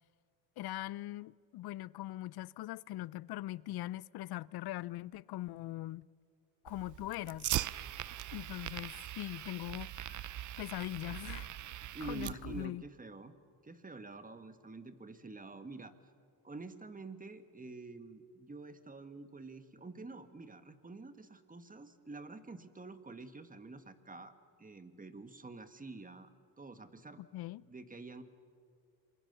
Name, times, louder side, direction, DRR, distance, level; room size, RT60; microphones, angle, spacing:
voice 1, 0.6-6.1 6.6-7.5 8.3-11.5 12.0-12.8 27.2-27.6, left 16 dB, 55° left, 0.6 m, -41 dB
Fire, 6.7-12.7, right 13 dB, 40° right, 0.6 m, -41 dB
voice 2, 11.9-13.3 13.6-15.9 16.4-26.3 26.6-27.2 27.7-28.2, right 3 dB, 20° right, 1.7 m, -48 dB
27.5 x 22.0 x 6.9 m
supercardioid pair, 80°, 45 cm